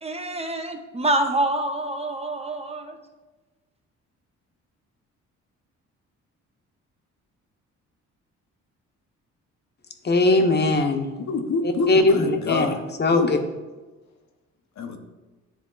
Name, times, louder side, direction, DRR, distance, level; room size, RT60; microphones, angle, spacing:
voice 1, 0.0-3.0, right 1 dB, 20° right, 5 dB, 0.6 m, -26 dB
voice 2, 10.0-11.1 11.6-12.7 13.0-13.4, left 2 dB, 35° left, 6 dB, 0.9 m, -20 dB
voice 3, 11.3-12.8 13.1-13.3 14.8-15.0, left 3 dB, 65° left, 4 dB, 1.0 m, -26 dB
9.9 x 3.6 x 3.8 m, 1.2 s
cardioid pair, 90°, 30 cm